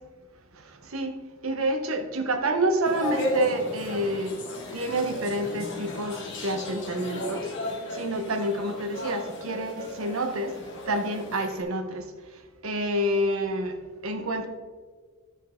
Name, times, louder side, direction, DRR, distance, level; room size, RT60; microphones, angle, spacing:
voice 1, 1.4-4.3 4.7-7.5 7.9-10.6 10.9-12.0 12.6-13.7 14.0-14.5, right 1 dB, 70° right, 6 dB, 1.2 m, -28 dB
sound 1, 2.8-11.6, left 1 dB, 55° left, 2.2 m, -35 dB
13.0 x 6.5 x 3.8 m, 1.5 s
head